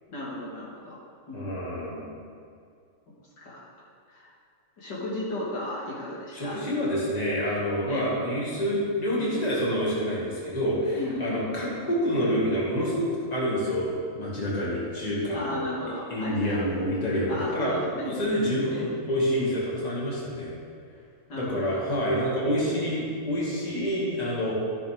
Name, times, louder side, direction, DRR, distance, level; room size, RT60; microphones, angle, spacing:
voice 1, 0.1-1.0 1.3-1.5 3.4-3.6 4.1-4.3 4.8-6.6 7.9-8.1 10.9-11.5 15.3-16.8 17.3-19.2 21.3-22.0, left 1 dB, 70° left, -6 dB, 2.4 m, -35 dB
voice 2, 1.3-2.2 6.3-15.6 16.1-17.7 18.0-20.5 21.3-24.5, equal, 20° left, -6 dB, 2.2 m, -27 dB
14.0 x 6.3 x 3.6 m, 2.3 s
omnidirectional pair, 2.0 m